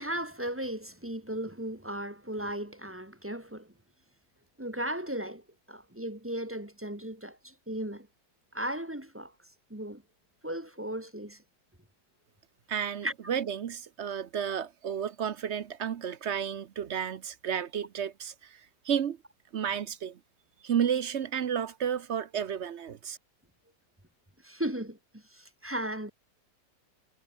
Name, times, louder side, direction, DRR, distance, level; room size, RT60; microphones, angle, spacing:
voice 1, 0.0-3.7 4.6-8.1 8.5-9.3 9.7-10.0 10.4-11.4 13.0-13.1 24.4-26.1, right 1 dB, 5° right, 1.8 m, -36 dB
voice 2, 12.7-19.2 19.5-20.2 20.6-23.2, right 8 dB, 55° right, 0.8 m, -32 dB
omnidirectional pair, 1.9 m